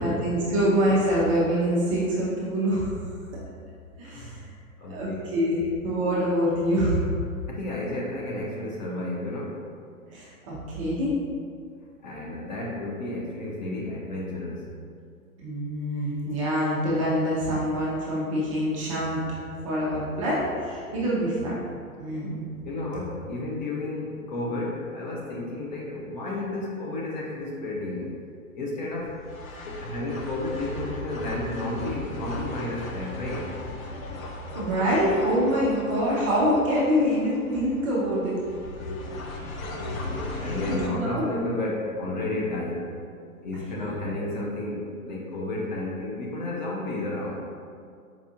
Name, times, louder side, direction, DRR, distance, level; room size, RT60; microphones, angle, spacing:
voice 1, 0.0-2.9 4.0-4.3 4.9-7.0 10.1-11.2 15.4-19.2 19.6-21.6 22.0-22.4 34.5-38.3 40.3-41.2 43.8-44.0, equal, 25° right, -6 dB, 0.4 m, -25 dB
voice 2, 4.0-4.4 4.8-5.2 7.5-9.6 12.0-14.6 22.6-28.1 28.5-29.2 29.6-33.5 40.4-43.0 43.4-47.4, left 2 dB, 35° left, -4 dB, 0.4 m, -32 dB
sound 1, 29.0-40.9, left 1 dB, 65° left, 0.7 m, -37 dB
4.6 x 2.4 x 2.6 m, 2.3 s
figure-of-eight pair, 115°, 44 cm